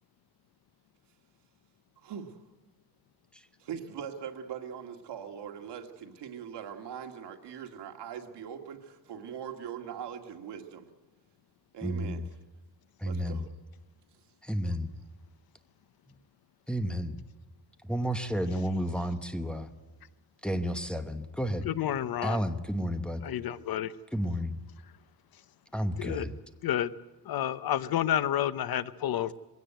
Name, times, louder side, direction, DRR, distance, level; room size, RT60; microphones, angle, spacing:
voice 1, 2.0-2.4 3.6-10.9 11.7-12.2 13.0-13.4, right 8 dB, 85° right, 2.1 m, -41 dB
voice 2, 11.8-12.2 13.0-13.5 14.4-14.9 16.1-16.2 16.7-17.2 17.8-19.7 20.4-21.7 22.2-23.2 24.1-24.6 25.7-26.3, equal, ahead, 1.1 m, -31 dB
voice 3, 21.7-22.4 23.2-23.9 26.0-26.2 26.6-26.9 27.2-29.3, left 11 dB, 60° left, 0.8 m, -30 dB
21.5 x 17.0 x 9.2 m
wide cardioid pair, 160°, 40 cm